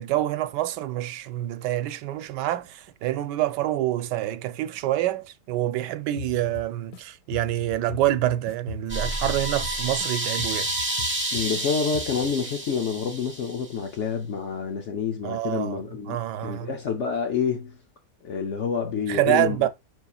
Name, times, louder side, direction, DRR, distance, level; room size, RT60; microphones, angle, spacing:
voice 1, 0.0-10.7 15.2-16.7 19.1-19.7, right 14 dB, 90° right, 1.2 m, -26 dB
sound 1, 6.2-7.0 7.3-10.1 10.4-11.6 11.9-12.3, left 9 dB, 90° left, 1.3 m, -40 dB
sound 2, 8.9-13.7, right 1 dB, 10° right, 0.6 m, -30 dB
voice 2, 11.3-17.8 18.2-19.7, left 6 dB, 60° left, 0.7 m, -28 dB
5.4 x 4.0 x 2.3 m
omnidirectional pair, 1.8 m